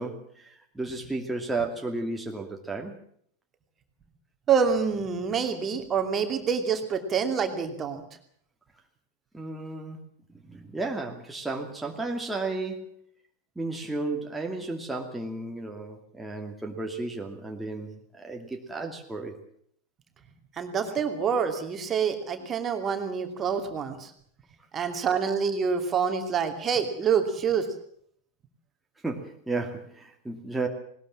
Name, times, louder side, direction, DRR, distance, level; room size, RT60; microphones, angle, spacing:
voice 1, 0.0-3.0 9.3-10.0 10.5-13.0 13.6-19.4 29.0-30.7, right 2 dB, 5° right, 1 dB, 2.5 m, -33 dB
voice 2, 4.5-8.0 20.6-24.1 24.7-27.7, right 6 dB, 25° right, 5 dB, 2.7 m, -26 dB
20.0 x 20.0 x 7.4 m, 0.64 s
figure-of-eight pair, 90°, 0 cm